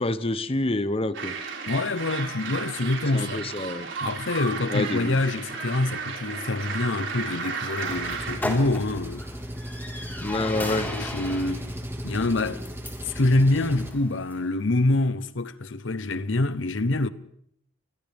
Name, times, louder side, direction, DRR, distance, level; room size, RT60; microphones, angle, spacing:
voice 1, 0.0-1.3 3.1-3.9 4.7-5.2 10.2-10.9, left 2 dB, 30° left, 0.8 m, -27 dB
sound 1, 1.1-8.4, right 5 dB, 75° right, 5.0 m, -34 dB
voice 2, 1.7-3.5 4.0-9.3 10.8-11.7 12.0-12.6 13.0-17.1, left 2 dB, 85° left, 0.9 m, -26 dB
sound 2, 4.4-14.5, left 1 dB, 10° left, 4.3 m, -39 dB
Engine, 7.9-13.9, equal, 15° right, 1.7 m, -36 dB
29.5 x 25.0 x 3.5 m
head